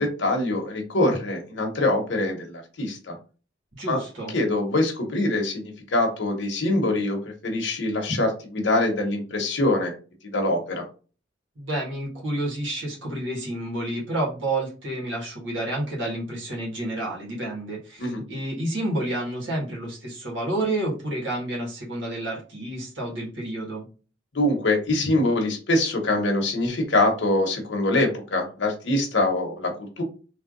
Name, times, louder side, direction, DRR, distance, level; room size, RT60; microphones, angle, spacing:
voice 1, 0.0-3.2 3.9-4.0 4.3-9.9 10.2-10.9 18.0-18.2 24.3-30.0, left 2 dB, 75° left, 2 dB, 0.9 m, -24 dB
voice 2, 3.7-4.3 11.5-23.8, right 1 dB, 80° right, -5 dB, 1.6 m, -30 dB
3.3 x 2.7 x 2.6 m, 0.36 s
head